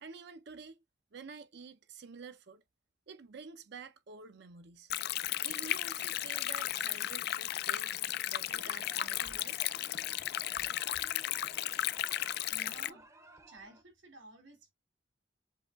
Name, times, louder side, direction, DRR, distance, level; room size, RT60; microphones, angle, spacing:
voice 1, 0.0-0.8 1.1-2.6 3.1-4.9 5.4-8.0 8.2-9.7, right 5 dB, 60° right, 0.5 m, -49 dB
Stream, 4.9-12.9, left 13 dB, 55° left, 0.3 m, -35 dB
sound 1, 8.5-13.8, right 2 dB, 15° right, 0.7 m, -57 dB
voice 2, 12.5-13.1 13.5-14.7, right 1 dB, 80° right, 2.3 m, -53 dB
7.5 x 2.9 x 2.3 m
head